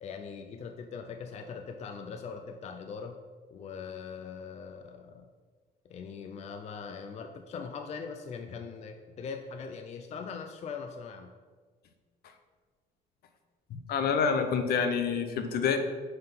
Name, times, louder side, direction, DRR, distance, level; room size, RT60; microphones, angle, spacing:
voice 1, 0.0-3.2 3.5-5.3 5.8-11.3, left 5 dB, 40° left, 6 dB, 0.5 m, -41 dB
voice 2, 13.7-15.8, left 6 dB, 65° left, 7 dB, 0.8 m, -27 dB
5.5 x 3.8 x 5.7 m, 1.5 s
cardioid pair, 110°, 17 cm